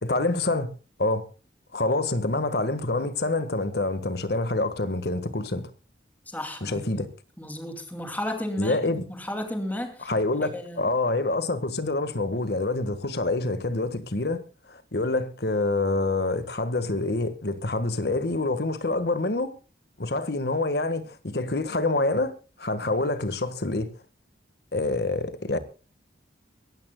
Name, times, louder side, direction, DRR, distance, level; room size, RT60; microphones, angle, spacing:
voice 1, 0.0-0.7 1.0-1.3 1.7-5.7 6.6-7.1 8.6-9.0 10.0-14.4 14.7-19.6 20.0-23.9 24.7-25.6, left 2 dB, 55° left, 1.5 m, -26 dB
voice 2, 6.3-7.0 7.4-10.1 10.5-10.8, left 1 dB, 10° left, 2.5 m, -33 dB
23.0 x 16.0 x 2.3 m
head